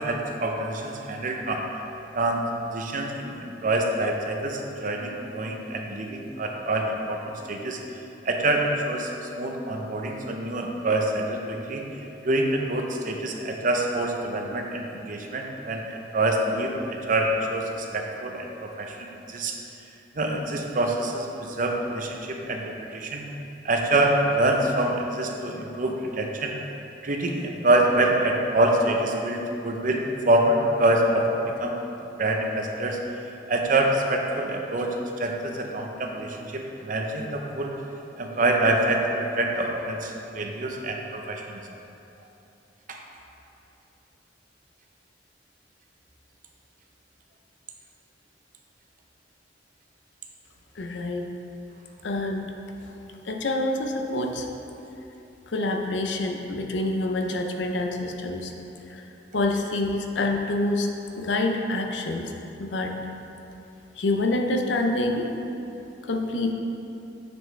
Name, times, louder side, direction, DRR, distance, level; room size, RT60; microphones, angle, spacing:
voice 1, 0.0-1.7 2.1-7.8 8.2-11.8 12.2-15.9 16.1-19.5 20.2-23.3 23.6-26.5 27.0-31.8 32.2-33.0 33.5-37.7 38.2-41.6 42.9-43.0, right 1 dB, 45° right, 2 dB, 0.7 m, -26 dB
voice 2, 50.8-51.2 52.0-52.5 53.3-54.5 55.5-58.5 59.3-60.9 61.2-62.2 62.6-62.9 64.0-65.3 66.1-66.5, left 2 dB, 80° left, 3 dB, 0.6 m, -26 dB
7.0 x 6.3 x 3.3 m, 2.9 s
head